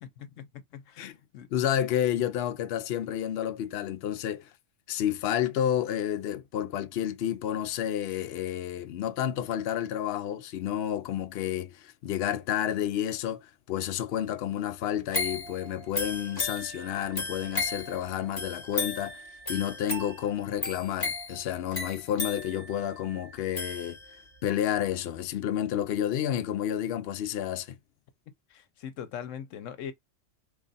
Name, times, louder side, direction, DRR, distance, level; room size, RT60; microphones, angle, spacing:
voice 1, 0.0-1.5 28.5-29.9, left 8 dB, 85° left, 1.0 m, -41 dB
voice 2, 1.5-4.5 4.9-19.2 19.5-24.0 24.4-27.8, left 10 dB, 65° left, 0.8 m, -30 dB
sound 1, 15.1-24.4 24.8-24.9, left 3 dB, 20° left, 1.1 m, -35 dB
3.1 x 2.4 x 4.0 m
omnidirectional pair, 1.3 m